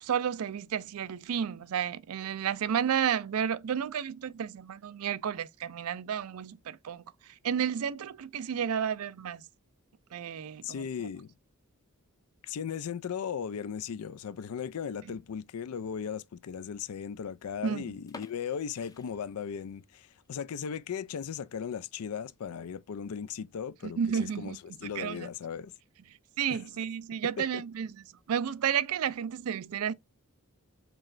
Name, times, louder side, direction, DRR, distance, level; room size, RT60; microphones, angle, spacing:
voice 1, 0.0-7.0 7.4-9.4 10.1-10.8 17.6-17.9 24.0-24.6 24.8-25.3 26.4-27.9 28.3-29.9, right 8 dB, 75° right, 0.4 m, -31 dB
voice 2, 10.6-11.3 12.4-25.7 26.5-26.6 27.4-27.6, left 7 dB, 80° left, 0.4 m, -37 dB
sound 1, 18.1-19.9 20.2-20.3 20.9-21.1 21.5-21.6 21.8-21.9 22.7-23.0, left 3 dB, 15° left, 0.5 m, -51 dB
4.5 x 3.0 x 2.5 m
head